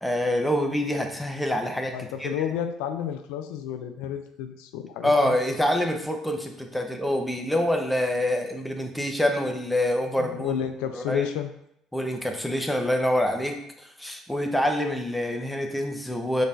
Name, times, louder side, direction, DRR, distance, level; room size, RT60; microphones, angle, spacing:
voice 1, 0.0-2.3 5.0-10.6 10.9-11.3 11.9-16.5, left 1 dB, 5° left, 4 dB, 0.8 m, -26 dB
voice 2, 1.9-5.3 10.2-11.5, left 9 dB, 80° left, 7 dB, 0.3 m, -31 dB
5.3 x 4.0 x 2.5 m, 0.77 s
hypercardioid pair, 65°, 0 cm